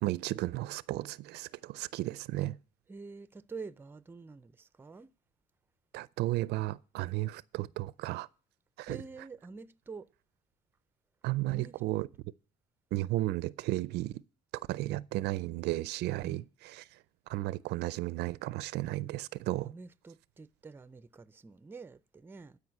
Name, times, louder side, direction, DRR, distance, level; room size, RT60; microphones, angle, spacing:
voice 1, 0.0-2.6 5.9-8.3 8.8-9.0 11.2-12.1 12.9-14.2 14.7-19.7, right 17 dB, 80° right, 0.4 m, -34 dB
voice 2, 2.9-5.1 8.9-10.1 11.5-11.8 16.2-16.5 19.6-22.6, right 4 dB, 15° right, 0.4 m, -47 dB
12.5 x 5.0 x 7.4 m
cardioid pair, 110°, 17 cm